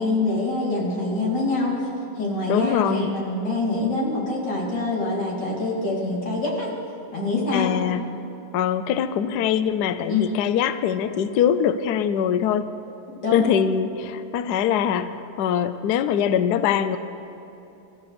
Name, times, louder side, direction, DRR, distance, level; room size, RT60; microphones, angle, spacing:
voice 1, 0.0-1.9 2.2-6.7 7.1-7.7 10.1-10.4 13.1-13.4, left 2 dB, 55° left, -6 dB, 3.9 m, -25 dB
voice 2, 2.5-3.1 7.5-8.0 8.5-12.7 13.3-17.0, left 8 dB, 80° left, 12 dB, 0.9 m, -23 dB
27.0 x 13.5 x 3.4 m, 3.0 s
omnidirectional pair, 2.3 m